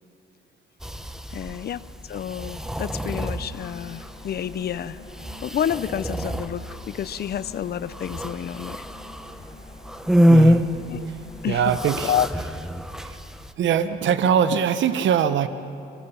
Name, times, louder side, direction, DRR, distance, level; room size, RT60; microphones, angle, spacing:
sound 1, 0.8-13.5, equal, 5° right, 1.0 m, -26 dB
voice 1, 1.3-5.0 5.4-8.9 10.9-11.1 11.4-12.3, left 9 dB, 55° left, 17 dB, 0.7 m, -29 dB
sound 2, 2.9-12.2, left 2 dB, 30° left, 4.7 m, -48 dB
voice 2, 10.3-10.7 11.5-12.1 13.0-13.2 13.6-15.5, right 8 dB, 70° right, 12 dB, 0.9 m, -22 dB
26.0 x 21.5 x 5.7 m, 2.6 s
cardioid pair, 90°, 20 cm